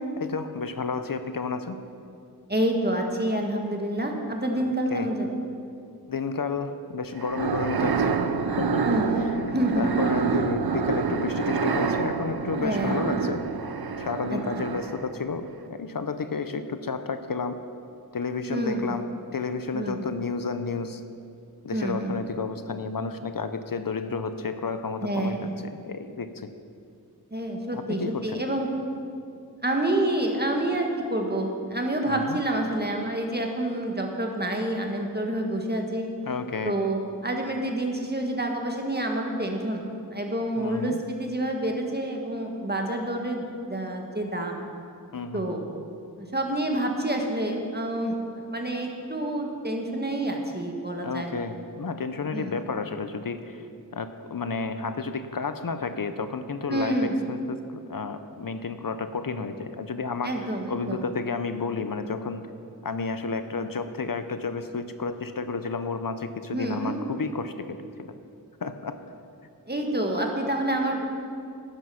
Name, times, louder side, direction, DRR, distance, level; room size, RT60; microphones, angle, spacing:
voice 1, 0.2-1.8 4.9-5.1 6.1-8.2 8.6-8.8 9.2-9.4 9.8-13.4 14.0-17.6 18.1-19.1 19.3-21.0 21.6-26.5 27.7-28.4 32.1-32.4 36.3-36.8 40.6-41.0 45.1-45.4 51.0-53.7 53.9-62.5 62.8-68.1 68.6-69.0, left 4 dB, 65° left, 9 dB, 0.7 m, -31 dB
voice 2, 2.5-5.3 8.8-9.2 9.5-9.9 12.6-13.1 14.3-14.4 18.5-18.9 19.7-20.0 21.7-22.2 25.0-25.5 27.3-28.7 29.6-36.1 36.6-39.8 40.1-44.6 45.3-45.6 46.2-48.1 48.5-51.3 52.3-52.6 56.7-57.1 60.2-61.0 66.5-67.0 69.7-71.0, right 1 dB, 25° right, 1 dB, 1.7 m, -28 dB
sound 1, 7.2-15.2, right 5 dB, 90° right, 0.7 m, -27 dB
11.5 x 9.8 x 5.7 m, 2.4 s
wide cardioid pair, 45°, 37 cm